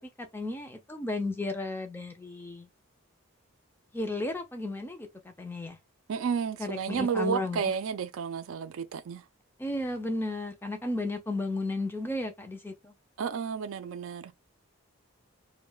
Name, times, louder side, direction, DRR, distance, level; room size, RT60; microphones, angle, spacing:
voice 1, 0.0-2.7 3.9-5.8 6.6-7.7 9.6-12.9, left 2 dB, 10° left, 0.4 m, -34 dB
voice 2, 6.1-9.2 13.2-14.3, right 6 dB, 75° right, 0.4 m, -31 dB
2.2 x 2.1 x 3.7 m
head